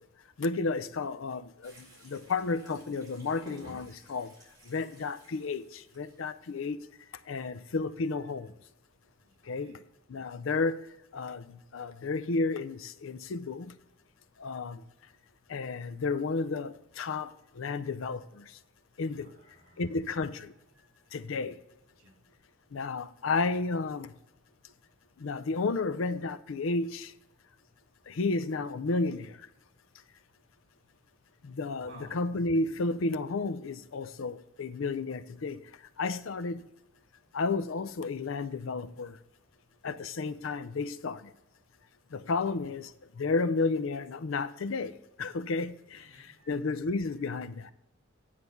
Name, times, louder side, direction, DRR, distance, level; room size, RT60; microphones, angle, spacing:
voice 1, 0.4-4.3 4.7-6.8 7.3-8.5 9.5-9.8 10.1-10.8 11.1-11.5 11.7-13.7 14.4-14.8 15.5-18.5 19.0-19.3 19.8-20.5 21.1-21.6 22.7-24.1 25.2-27.1 28.1-29.3 31.4-35.6 36.0-36.6 37.3-39.1 39.8-41.3 42.1-42.9 43.2-46.0 46.5-47.7, left 3 dB, 70° left, 0.5 m, -32 dB
sound 1, 1.6-6.6, equal, 20° right, 3.8 m, -54 dB
voice 2, 7.2-7.7 8.2-8.3 9.2-9.9 19.1-19.9 20.7-21.1 22.0-22.2 31.8-32.2 42.1-42.6 45.9-46.5, right 1 dB, 55° right, 2.6 m, -57 dB
9.8 x 4.7 x 6.9 m
head